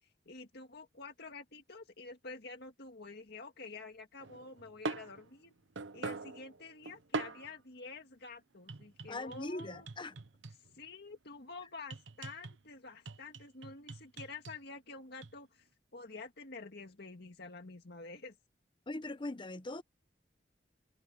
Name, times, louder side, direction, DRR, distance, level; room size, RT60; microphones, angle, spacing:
voice 1, 0.0-5.5 5.9-9.9 10.7-15.7 15.9-18.4, left 3 dB, 60° left, 2.0 m, -49 dB
sound 1, 4.2-7.6 8.7-10.8 11.9-12.6 13.1-14.6 15.2-15.4, right 3 dB, 85° right, 0.9 m, -43 dB
voice 2, 9.1-10.1 18.9-19.8, left 2 dB, 25° left, 0.9 m, -40 dB
head